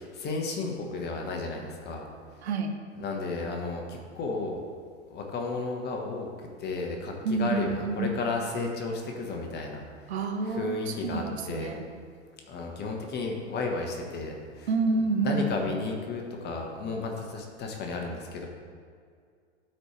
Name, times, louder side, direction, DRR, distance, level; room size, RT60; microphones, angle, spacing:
voice 1, 0.0-2.1 2.3-2.5 3.0-4.6 5.1-9.8 10.4-11.8 12.5-14.7 15.2-18.5, left 3 dB, 30° left, 1 dB, 1.3 m, -33 dB
voice 2, 2.4-2.7 7.2-8.1 10.1-11.9 14.7-15.5, right 3 dB, 65° right, 4 dB, 1.1 m, -28 dB
12.5 x 4.4 x 3.3 m, 2.1 s
figure-of-eight pair, 95°, 35 cm